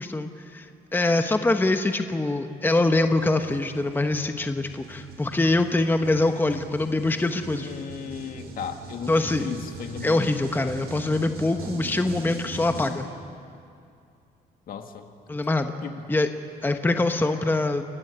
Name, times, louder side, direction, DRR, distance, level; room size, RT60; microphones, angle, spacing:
voice 1, 0.0-7.7 9.1-9.5 10.0-13.1 15.3-15.7 16.1-16.3 16.6-17.8, left 2 dB, 10° left, 7 dB, 1.1 m, -24 dB
sound 1, 2.6-12.9, right 3 dB, 70° right, 5.7 m, -41 dB
voice 2, 7.6-10.3 14.7-15.1 15.8-16.0, left 7 dB, 60° left, 6 dB, 1.9 m, -36 dB
29.5 x 15.0 x 9.8 m, 2.4 s
cardioid pair, 115°, 17 cm